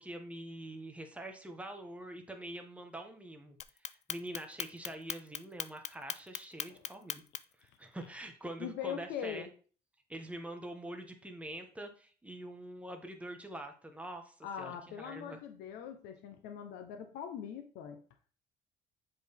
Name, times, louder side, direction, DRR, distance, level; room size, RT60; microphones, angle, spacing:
voice 1, 0.0-3.6 4.1-7.2 7.6-9.5 10.1-15.4, right 1 dB, 10° right, 4 dB, 1.2 m, -45 dB
Clock, 3.6-7.6, left 9 dB, 40° left, 0.4 m, -39 dB
voice 2, 8.6-9.5 14.4-18.0, left 8 dB, 90° left, 6 dB, 0.8 m, -41 dB
7.5 x 4.2 x 3.5 m, 0.40 s
cardioid pair, 110°, 17 cm